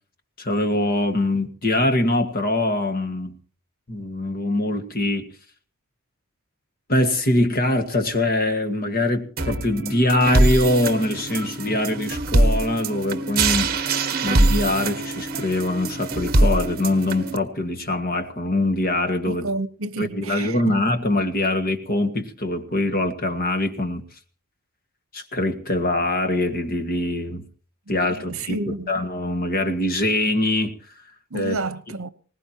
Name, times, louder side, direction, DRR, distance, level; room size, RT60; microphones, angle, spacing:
voice 1, 0.4-3.3 3.9-5.3 6.9-13.8 14.2-19.5 20.0-24.0 25.1-27.4 27.9-30.8 31.3-31.6, left 1 dB, 45° left, 1.9 m, -23 dB
sound 1, 9.4-17.4, right 2 dB, 45° right, 1.4 m, -23 dB
voice 2, 19.3-20.8 27.9-28.0 28.2-28.9 31.3-32.1, right 2 dB, 65° right, 1.1 m, -30 dB
21.5 x 19.5 x 3.0 m
head